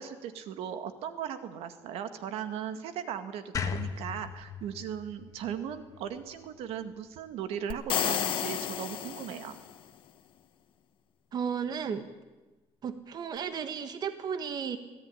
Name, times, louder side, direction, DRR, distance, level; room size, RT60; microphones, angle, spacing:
voice 1, 0.0-9.6, right 9 dB, 80° right, 10 dB, 2.1 m, -38 dB
sound 1, 3.5-6.7, left 6 dB, 35° left, 1.7 m, -37 dB
sound 2, 7.7-9.8, left 11 dB, 60° left, 1.6 m, -31 dB
voice 2, 11.3-12.0 12.8-14.8, right 7 dB, 45° right, 10 dB, 1.5 m, -34 dB
25.0 x 17.5 x 10.0 m, 1.2 s
cardioid pair, 145°, 10 cm